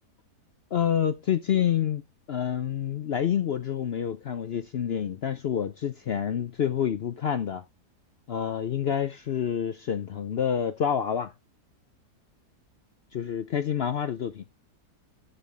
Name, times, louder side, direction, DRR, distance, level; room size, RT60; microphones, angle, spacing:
voice 1, 0.7-2.0 2.3-7.6 8.3-11.3 13.1-14.4, left 9 dB, 70° left, 0.6 m, -28 dB
13.5 x 5.6 x 3.3 m
omnidirectional pair, 1.7 m